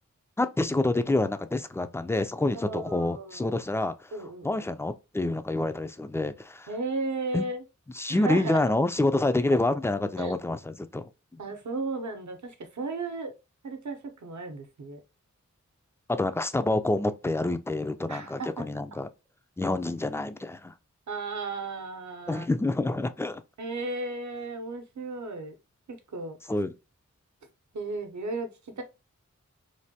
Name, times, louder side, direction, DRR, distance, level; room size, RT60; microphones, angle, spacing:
voice 1, 0.4-6.7 7.3-7.4 7.9-11.1 16.1-19.1 19.6-20.7 22.3-23.4 26.5-26.7, left 2 dB, 10° left, 0.3 m, -27 dB
voice 2, 2.5-3.6 4.1-4.7 6.7-7.6 8.1-8.6 10.2-10.4 11.4-13.3 13.6-15.0 18.1-18.5 21.1-22.5 23.6-25.5 25.9-26.4 27.7-28.5 28.8-28.9, right 3 dB, 70° right, 0.7 m, -34 dB
3.2 x 2.2 x 2.7 m
cardioid pair, 40°, 30 cm